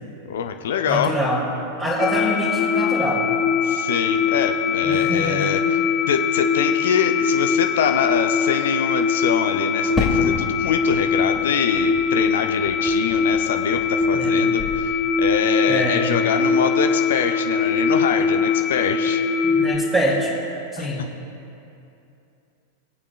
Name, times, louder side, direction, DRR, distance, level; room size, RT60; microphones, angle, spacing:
voice 1, 0.3-1.2 3.6-5.8 6.1-19.2 20.8-20.9, left 7 dB, 60° left, 6 dB, 0.7 m, -24 dB
voice 2, 0.9-1.4 1.8-3.3 4.8-5.5 14.1-14.5 15.7-16.1 19.4-20.3 20.7-21.0, equal, 15° right, -6 dB, 2.4 m, -24 dB
sound 1, 2.0-19.8, left 5 dB, 25° left, 1.0 m, -22 dB
Fireworks, 10.0-14.3 14.6-15.4, left 2 dB, 10° left, 2.3 m, -31 dB
25.0 x 8.4 x 2.4 m, 2.8 s
figure-of-eight pair, 90°, 0 cm